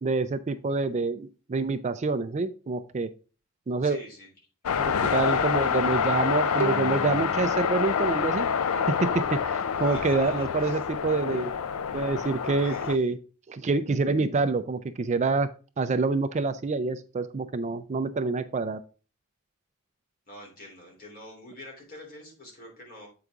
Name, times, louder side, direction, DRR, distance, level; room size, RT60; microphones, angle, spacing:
voice 1, 0.0-3.1 3.7-4.0 4.8-8.5 8.9-11.5 11.9-13.2 13.5-15.5 15.8-18.8, right 3 dB, 35° right, 11 dB, 0.4 m, -27 dB
voice 2, 3.8-4.3 9.8-10.9 12.4-13.0 20.3-23.1, left 1 dB, 45° left, -1 dB, 3.2 m, -45 dB
sound 1, 4.7-13.0, left 7 dB, 80° left, 0.5 m, -27 dB
Bowed string instrument, 6.6-9.7, right 3 dB, 70° right, 0.9 m, -37 dB
8.0 x 4.8 x 3.5 m, 0.35 s
head